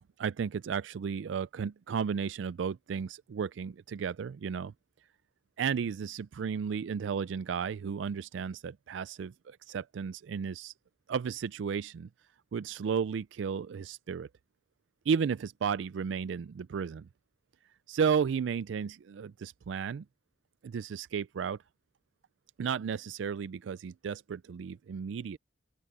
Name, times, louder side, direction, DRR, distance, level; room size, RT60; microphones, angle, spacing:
voice 1, 0.2-4.7 5.6-10.7 11.1-12.1 12.5-14.3 15.1-17.1 17.9-20.0 20.6-21.6 22.6-25.4, right 6 dB, 85° right, 0.4 m, -33 dB
open air
head